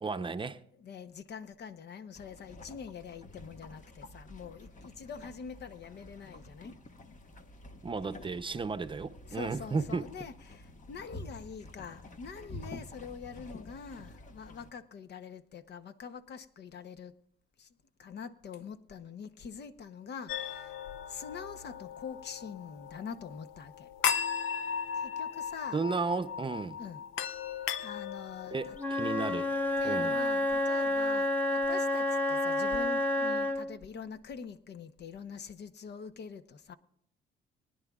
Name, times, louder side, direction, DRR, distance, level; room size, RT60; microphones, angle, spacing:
voice 1, 0.0-0.6 7.8-10.0 25.7-26.8 28.5-29.5 29.8-30.2, right 4 dB, 25° right, 0.7 m, -34 dB
voice 2, 0.8-6.7 9.3-17.1 17.6-17.7 18.0-20.7 21.1-23.9 24.9-25.8 26.8-27.0 27.8-28.8 29.8-36.7, left 6 dB, 60° left, 0.9 m, -44 dB
sound 1, 2.1-14.7, left 1 dB, 40° left, 1.4 m, -49 dB
sound 2, 20.3-31.3, left 7 dB, 90° left, 0.7 m, -38 dB
Wind instrument woodwind instrument, 28.8-33.7, left 1 dB, 10° left, 1.1 m, -29 dB
23.0 x 10.5 x 2.4 m
cardioid pair, 90°, 20 cm